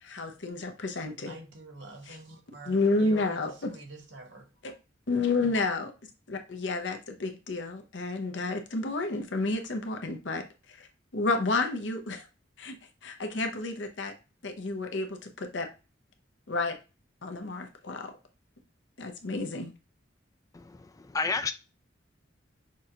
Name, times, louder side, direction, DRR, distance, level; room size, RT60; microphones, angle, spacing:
voice 1, 0.0-1.3 2.7-3.7 4.6-4.7 5.1-5.9 6.3-10.4 10.7-10.9 11.1-12.3 12.6-12.8 13.0-14.1 14.4-15.7 16.5-16.8 17.2-18.1 19.0-19.7, left 3 dB, 75° left, 0.8 m, -30 dB
voice 2, 1.2-4.8 5.4-5.5, right 2 dB, 80° right, 1.2 m, -47 dB
voice 3, 20.5-21.5, left 4 dB, 20° left, 0.3 m, -31 dB
6.1 x 2.5 x 2.8 m
head